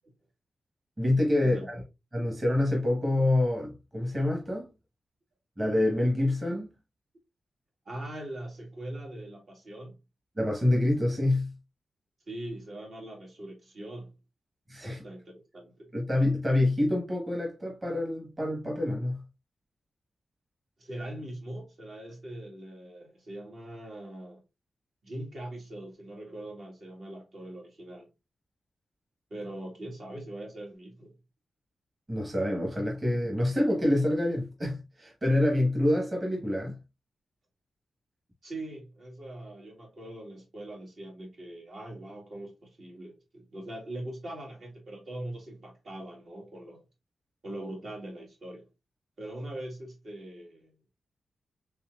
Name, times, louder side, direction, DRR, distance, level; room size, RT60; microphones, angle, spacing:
voice 1, 1.0-1.8 2.1-4.7 5.6-6.7 10.4-11.5 14.7-15.0 15.9-19.2 32.1-36.8, left 1 dB, 25° right, 1.3 m, -26 dB
voice 2, 7.9-10.0 12.3-14.1 14.8-15.9 20.8-24.4 25.0-28.1 29.3-31.1 38.4-46.8 47.4-48.7 49.2-50.7, right 1 dB, 60° right, 1.8 m, -41 dB
4.2 x 3.6 x 2.4 m
wide cardioid pair, 115°, 0 cm